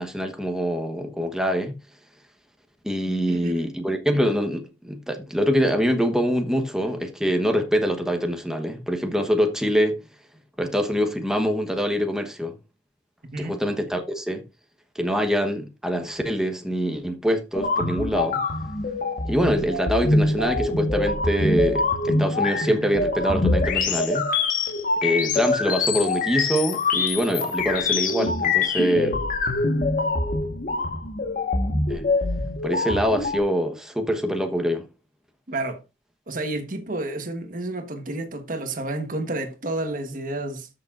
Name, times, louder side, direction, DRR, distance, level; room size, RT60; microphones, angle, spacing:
voice 1, 0.0-1.8 2.8-10.0 10.6-12.5 13.4-14.4 14.9-18.4 19.3-24.3 25.0-29.1 31.9-32.1 32.6-34.9, equal, 5° right, 1.2 m, -24 dB
voice 2, 3.1-3.7 13.3-13.5 35.5-35.8 36.3-40.7, right 2 dB, 50° right, 1.3 m, -30 dB
sound 1, 17.5-33.4, left 3 dB, 50° left, 1.5 m, -24 dB
13.5 x 6.7 x 2.5 m
head